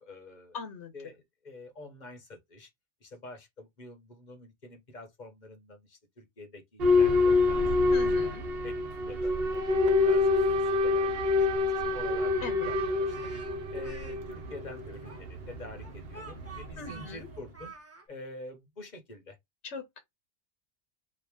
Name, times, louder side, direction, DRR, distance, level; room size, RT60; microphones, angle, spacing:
voice 1, 0.0-0.6 0.9-2.7 3.0-7.8 8.2-8.3 8.6-8.7 9.1-10.3 10.8-11.1 11.4-12.3 12.6-13.3 13.7-17.7 18.1-19.4, left 2 dB, 40° left, 1.3 m, -47 dB
voice 2, 0.5-0.9 7.9-8.5 12.4-12.7 16.8-17.3 19.6-20.0, left 5 dB, 85° left, 1.3 m, -40 dB
Boat Water vehicle / Alarm, 6.8-17.5, left 3 dB, 60° right, 1.2 m, -27 dB
Speech, 13.1-14.2 15.0-18.0, right 3 dB, 15° right, 0.9 m, -49 dB
4.5 x 3.0 x 3.6 m
omnidirectional pair, 1.2 m